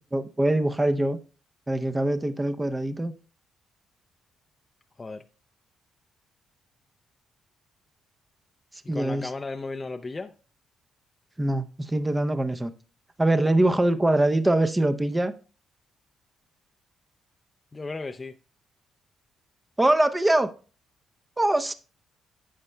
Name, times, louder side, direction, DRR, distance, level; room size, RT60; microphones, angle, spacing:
voice 1, 0.1-1.2 1.7-3.1 8.9-9.3 11.4-12.7 13.2-15.3 19.8-20.5 21.4-21.7, right 1 dB, 15° right, 0.6 m, -23 dB
voice 2, 8.8-10.3 17.7-18.4, left 3 dB, 25° left, 0.5 m, -35 dB
11.5 x 8.1 x 2.2 m
cardioid pair, 90°, 0 cm